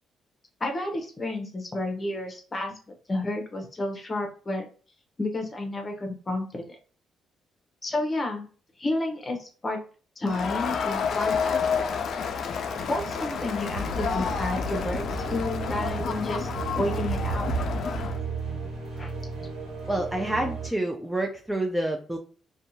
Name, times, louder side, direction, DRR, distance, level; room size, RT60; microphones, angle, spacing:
voice 1, 0.6-2.7 3.1-4.6 5.2-6.8 7.8-8.5 8.8-9.8 10.2-11.9 12.8-16.5 16.7-17.5 19.0-19.1, left 2 dB, 30° left, 3 dB, 0.8 m, -31 dB
Crowd, 10.3-18.2, left 6 dB, 60° left, 0.4 m, -30 dB
sound 1, 12.7-20.7, right 4 dB, 80° right, 1.1 m, -33 dB
voice 2, 19.9-22.2, right 1 dB, 10° right, 2 dB, 0.4 m, -28 dB
2.7 x 2.2 x 2.7 m, 0.39 s
cardioid pair, 90°, 0 cm